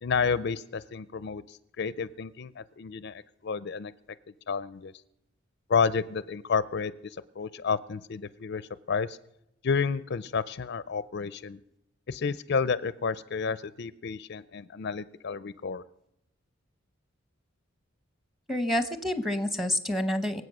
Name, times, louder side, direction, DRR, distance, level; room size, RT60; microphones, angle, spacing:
voice 1, 0.0-3.9 4.5-4.9 5.7-9.2 9.6-11.6 12.1-15.8, left 5 dB, 50° left, 17 dB, 0.4 m, -30 dB
voice 2, 18.5-20.4, left 1 dB, ahead, 10 dB, 0.9 m, -28 dB
24.0 x 8.2 x 6.1 m, 0.82 s
head